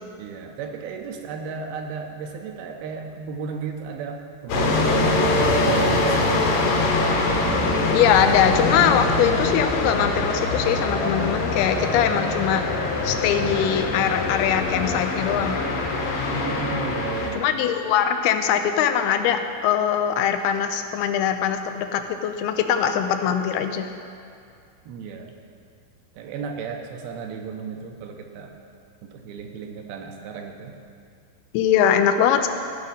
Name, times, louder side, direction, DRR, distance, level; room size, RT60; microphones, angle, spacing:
voice 1, 0.2-6.7 16.3-17.6 24.9-25.3 26.1-28.5 29.0-30.8, right 5 dB, 85° right, 3 dB, 2.6 m, -35 dB
sound 1, 4.5-17.3, left 2 dB, 65° left, 2.3 m, -23 dB
voice 2, 7.9-12.7 13.0-15.6 17.3-23.9 31.5-32.5, left 9 dB, 90° left, 7 dB, 2.6 m, -22 dB
15.0 x 5.0 x 5.6 m, 2.3 s
omnidirectional pair, 4.4 m